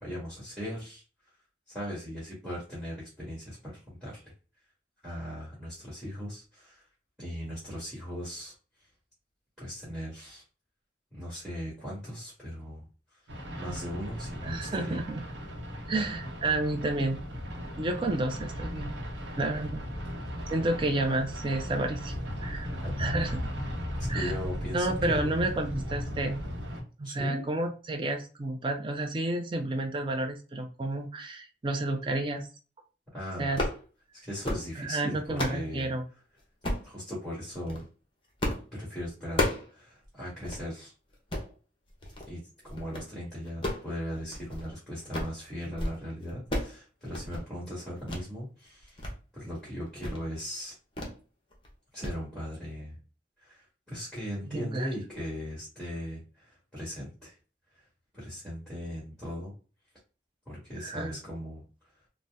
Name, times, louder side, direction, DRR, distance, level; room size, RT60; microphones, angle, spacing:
voice 1, 0.0-1.0 1.7-4.3 5.0-6.8 7.2-8.5 9.6-10.4 11.1-13.2 13.5-15.0 22.8-23.0 24.0-25.6 27.0-27.5 33.1-33.7 34.1-35.9 36.8-37.9 38.7-40.9 42.3-49.1 49.3-50.7 51.9-53.0 53.4-57.4 57.7-57.8 58.1-59.5 60.5-61.6, equal, ahead, -7 dB, 1.3 m, -38 dB
sound 1, 13.3-26.8, equal, 85° right, 0.8 m, -36 dB
voice 2, 14.4-15.2 15.9-17.2 17.8-19.0 19.4-19.8 20.5-22.1 22.4-22.7 23.0-23.5 24.1-24.3 24.7-26.4 27.0-32.5 33.4-33.6 34.8-36.0 54.5-54.9 60.8-61.1, right 2 dB, 30° right, 5 dB, 0.4 m, -30 dB
sound 2, 33.4-33.8 34.3-34.7 35.1-35.6 36.6-36.9 37.5-37.8 38.4-38.7 39.0-39.7 40.0-40.1 40.4-40.6 41.1-41.5 42.0-42.3 42.7-43.1 43.5-44.7 45.0-45.4 45.6-46.0 46.2-46.8 47.0-47.5 48.1-48.3 48.7-49.1 49.5-49.6 50.0-50.2 51.0-51.2 51.5-51.7 52.0-52.2, left 1 dB, 30° left, 0.7 m, -33 dB
2.7 x 2.1 x 3.3 m, 0.35 s
head